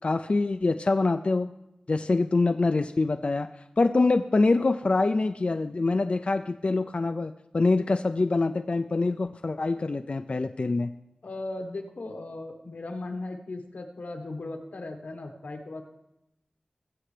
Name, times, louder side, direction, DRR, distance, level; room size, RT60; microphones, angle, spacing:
voice 1, 0.0-1.5 1.9-3.5 3.8-10.9, left 3 dB, 50° left, 8 dB, 0.3 m, -25 dB
voice 2, 11.2-15.8, left 2 dB, 90° left, 4 dB, 1.3 m, -37 dB
20.0 x 7.8 x 3.3 m, 0.89 s
wide cardioid pair, 75°, 3 cm